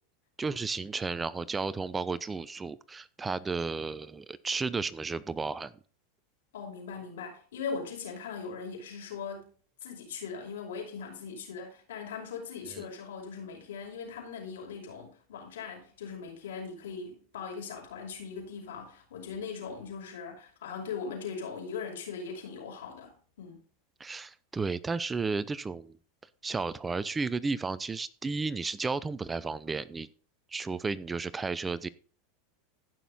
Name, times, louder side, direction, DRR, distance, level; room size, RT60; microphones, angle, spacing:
voice 1, 0.4-5.7 12.7-12.8 24.0-26.0 26.4-30.1 30.5-31.9, right 4 dB, 15° right, 0.7 m, -33 dB
voice 2, 6.5-9.5 9.8-23.6, left 5 dB, 80° left, 5.3 m, -40 dB
15.0 x 6.2 x 4.1 m
hypercardioid pair, 105°, 0 cm